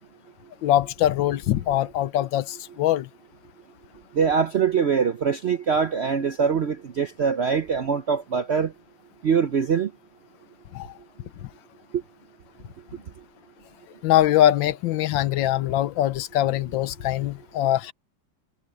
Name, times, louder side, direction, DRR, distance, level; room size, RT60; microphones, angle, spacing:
voice 1, 0.6-3.1 10.7-10.9 14.0-17.9, left 13 dB, 90° left, 1.5 m, -22 dB
voice 2, 4.1-8.7 9.2-9.9 11.9-12.0, right 6 dB, 65° right, 0.6 m, -23 dB
omnidirectional pair, 2.0 m